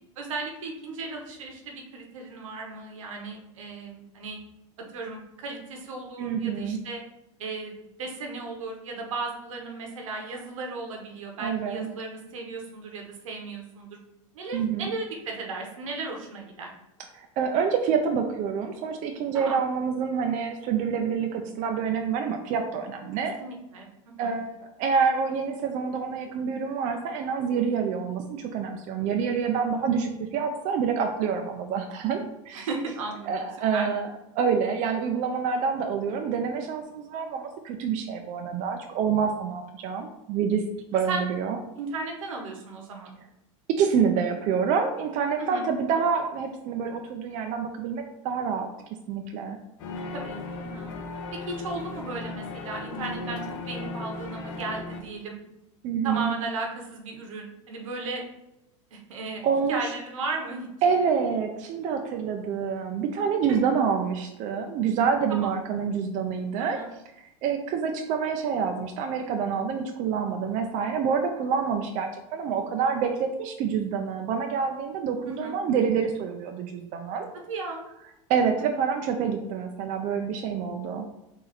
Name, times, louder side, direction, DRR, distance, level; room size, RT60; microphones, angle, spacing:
voice 1, 0.2-4.4 4.8-7.0 7.4-14.0 14.3-16.7 19.3-19.6 23.4-24.3 32.7-33.4 33.7-33.9 41.1-41.2 41.8-43.2 45.4-45.6 50.1-50.9 51.5-55.4 56.0-58.2 58.9-59.4 59.7-60.7 65.3-65.5 66.6-66.9 75.3-75.5 77.5-77.8 78.6-79.0, right 3 dB, 85° right, 2 dB, 1.1 m, -35 dB
voice 2, 6.2-6.8 11.4-11.9 14.5-14.9 17.1-23.3 24.2-32.7 33.3-34.1 34.3-40.6 40.9-41.6 43.7-48.7 49.1-49.6 55.8-56.3 59.4-59.8 60.8-66.8 67.4-77.3 78.3-81.0, right 6 dB, 50° right, 4 dB, 0.5 m, -27 dB
sound 1, 49.8-55.0, left 3 dB, 70° left, 0.9 m, -36 dB
4.0 x 2.7 x 4.2 m, 0.91 s
hypercardioid pair, 100°, 17 cm